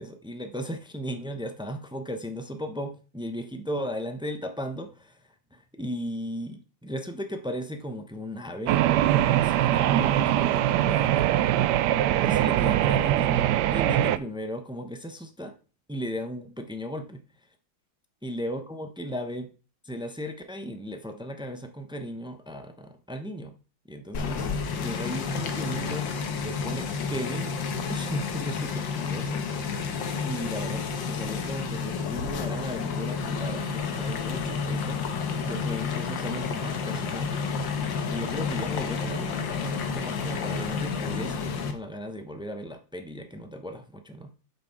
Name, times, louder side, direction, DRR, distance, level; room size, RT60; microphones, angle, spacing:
voice 1, 0.0-5.2 5.5-11.6 12.2-15.5 15.9-17.2 18.2-19.5 19.8-23.6 23.9-24.5 24.8-27.6 27.9-29.9 30.2-44.3, equal, 5° right, 6 dB, 0.3 m, -36 dB
sound 1, 8.7-14.2, right 12 dB, 70° right, 1.1 m, -22 dB
sound 2, 24.1-41.7, left 5 dB, 80° left, 1.8 m, -30 dB
7.7 x 5.5 x 5.9 m, 0.36 s
omnidirectional pair, 2.0 m